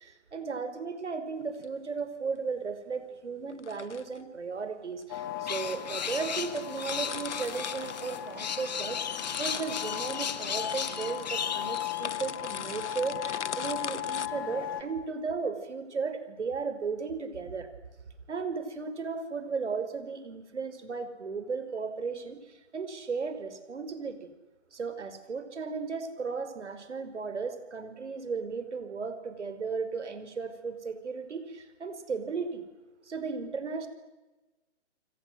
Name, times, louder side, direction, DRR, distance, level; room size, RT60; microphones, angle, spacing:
voice 1, 0.0-9.0 9.3-17.7 18.3-24.3 24.7-32.7 33.0-33.9, right 5 dB, 75° right, 10 dB, 5.8 m, -35 dB
sound 1, 1.4-1.7 3.5-4.2 5.0-5.1 5.8-5.9 6.2-6.3 6.5-8.7 9.0-14.3, left 7 dB, 75° left, 1.1 m, -41 dB
sound 2, 5.1-14.8, left 11 dB, 20° left, 1.7 m, -38 dB
sound 3, 5.5-12.0, left 7 dB, 35° left, 1.6 m, -36 dB
27.5 x 25.5 x 7.8 m, 1.1 s
hypercardioid pair, 170°, 36 cm